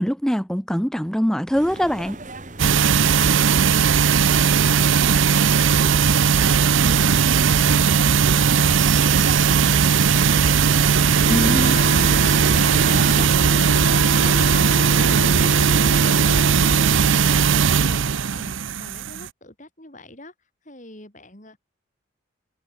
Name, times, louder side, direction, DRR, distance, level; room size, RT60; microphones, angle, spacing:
voice 1, 0.0-2.2 11.3-11.8, equal, 5° left, 1.1 m, -23 dB
sound 1, 1.5-13.3, right 4 dB, 40° right, 2.7 m, -34 dB
sound 2, 2.6-19.3, right 6 dB, 75° right, 0.6 m, -18 dB
voice 2, 9.1-15.4 17.1-20.3 20.6-21.6, left 2 dB, 40° left, 4.2 m, -46 dB
Wind instrument woodwind instrument, 11.2-17.2, left 2 dB, 70° left, 2.1 m, -31 dB
head